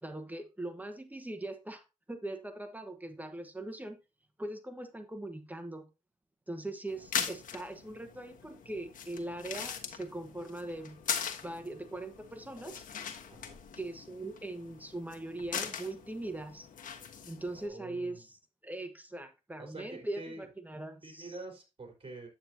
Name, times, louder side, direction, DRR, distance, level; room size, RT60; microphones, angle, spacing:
voice 1, 0.0-4.0 4.4-5.8 6.5-11.0 11.4-12.8 13.7-16.7 17.2-21.4, right 2 dB, 10° right, 6 dB, 1.3 m, -41 dB
sound 1, 6.9-17.7, left 7 dB, 90° left, 1.3 m, -41 dB
voice 2, 17.5-18.3 19.6-20.5 21.0-22.3, right 2 dB, 45° right, 2 dB, 4.3 m, -46 dB
8.9 x 8.7 x 2.8 m, 0.28 s
cardioid pair, 75°, 14 cm